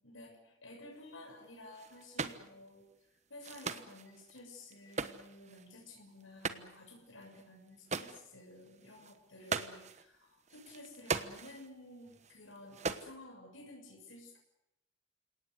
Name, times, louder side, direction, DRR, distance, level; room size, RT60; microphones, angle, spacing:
voice 1, 0.0-14.4, left 1 dB, 85° left, 1 dB, 6.9 m, -53 dB
sound 1, 1.7-2.5 3.4-5.7 6.2-6.9 7.2-7.4 7.7-8.3 8.6-10.1 10.5-11.7 12.1-13.1, right 4 dB, 35° right, 1.2 m, -40 dB
30.0 x 18.0 x 8.2 m, 0.84 s
head